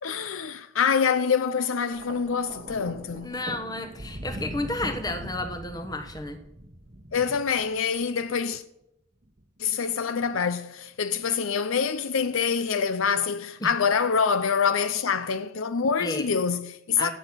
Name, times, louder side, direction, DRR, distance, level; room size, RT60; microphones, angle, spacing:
voice 1, 0.0-3.3 7.1-8.6 9.6-17.1, left 6 dB, 75° left, 0.5 m, -26 dB
Thunder, 1.9-8.3 9.2-9.5, right 1 dB, 35° right, 1.0 m, -40 dB
voice 2, 3.2-6.4 13.6-13.7 16.0-16.3 17.0-17.1, left 2 dB, 15° left, 1.0 m, -32 dB
16.5 x 7.3 x 5.8 m
head